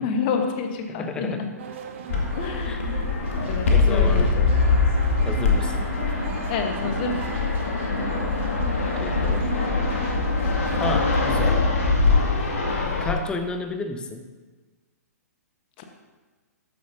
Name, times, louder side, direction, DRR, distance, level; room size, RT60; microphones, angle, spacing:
voice 1, 0.0-1.5 2.4-3.0 3.4-4.5 6.5-7.2 15.8-15.9, left 5 dB, 35° left, 5 dB, 1.1 m, -29 dB
voice 2, 0.9-1.5 2.6-2.8 3.7-4.3 5.2-5.9 9.0-9.5 10.8-11.7 13.0-14.3, left 3 dB, 10° left, 9 dB, 0.7 m, -31 dB
sound 1, 1.6-11.6, right 7 dB, 45° right, 1.0 m, -37 dB
Fixed-wing aircraft airplane, 2.1-13.1, left 3 dB, 55° left, 1.9 m, -23 dB
13.0 x 9.4 x 2.7 m, 1.3 s
figure-of-eight pair, 120°, 9 cm